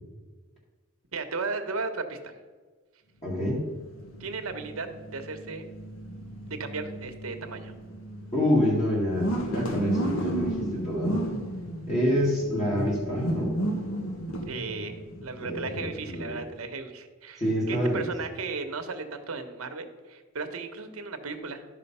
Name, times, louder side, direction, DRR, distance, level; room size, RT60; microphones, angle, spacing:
voice 1, 1.1-2.3 4.2-4.9 5.1-5.7 6.4-7.7 14.5-21.7, right 4 dB, 80° right, 7 dB, 1.1 m, -35 dB
voice 2, 3.2-3.7 8.3-11.2 11.9-13.5 15.4-16.4 17.4-18.1, equal, 30° left, -6 dB, 2.2 m, -27 dB
sound 1, 3.3-16.6, right 1 dB, 65° left, 1.2 m, -34 dB
12.0 x 5.2 x 5.5 m, 1.4 s
head